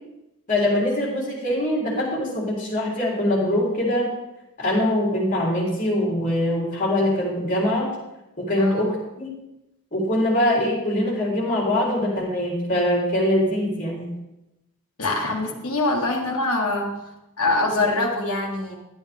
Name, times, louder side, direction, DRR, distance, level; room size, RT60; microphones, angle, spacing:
voice 1, 0.5-4.1 4.6-7.9 8.4-9.3 9.9-14.1, left 1 dB, 35° left, -4 dB, 3.7 m, -23 dB
voice 2, 15.0-16.9 17.4-18.8, left 2 dB, 85° left, -1 dB, 1.7 m, -24 dB
11.5 x 9.7 x 3.6 m, 0.93 s
head